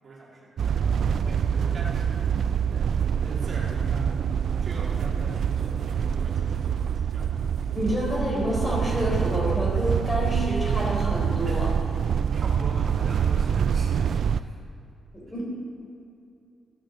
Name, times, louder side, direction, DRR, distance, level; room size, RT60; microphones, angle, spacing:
voice 1, 0.0-2.2 2.7-2.9 3.2-7.3 7.7-7.8 11.4-11.7 12.3-14.6, right 2 dB, 45° right, -3 dB, 2.1 m, -40 dB
sound 1, 0.6-14.4, right 7 dB, 65° right, 0.3 m, -25 dB
voice 2, 7.7-11.7 15.1-15.5, equal, 20° left, -3 dB, 3.7 m, -28 dB
13.0 x 9.3 x 6.9 m, 2.6 s
cardioid pair, 130°, 0 cm